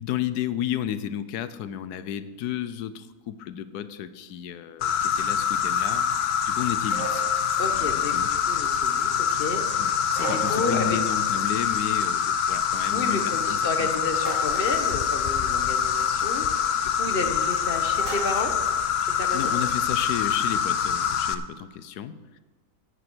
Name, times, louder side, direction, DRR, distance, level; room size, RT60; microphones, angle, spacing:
voice 1, 0.0-7.2 7.7-8.3 9.8-13.9 17.1-17.2 19.3-22.4, left 10 dB, 80° left, 13 dB, 1.2 m, -33 dB
Insect, 4.8-21.3, left 7 dB, 60° left, 0.6 m, -25 dB
sound 1, 6.9-7.4 10.1-10.9 14.2-14.9 18.0-18.5, right 3 dB, 45° right, 4.3 m, -36 dB
voice 2, 7.6-11.0 12.9-18.5 19.0-19.6, left 2 dB, 40° left, 6 dB, 1.1 m, -32 dB
9.8 x 9.3 x 6.1 m, 1.4 s
omnidirectional pair, 1.7 m